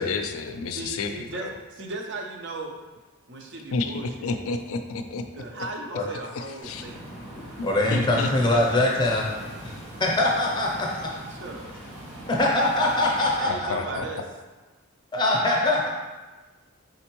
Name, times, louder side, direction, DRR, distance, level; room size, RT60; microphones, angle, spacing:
voice 1, 0.0-1.5 3.7-5.2 6.3-6.9 7.6-8.3 13.5-14.1, left 4 dB, 70° left, 6 dB, 0.3 m, -30 dB
voice 2, 0.7-2.7 3.3-4.3 5.4-7.0 11.3-11.7 13.4-14.2, right 2 dB, 50° right, 1 dB, 0.5 m, -37 dB
sound 1, 6.6-13.4, right 1 dB, 85° right, 1.3 m, -41 dB
voice 3, 7.6-9.2 9.6-9.7 10.0-11.1 12.3-13.7 15.1-15.9, left 1 dB, 20° left, -1 dB, 0.6 m, -23 dB
4.2 x 3.7 x 3.0 m, 1.2 s
head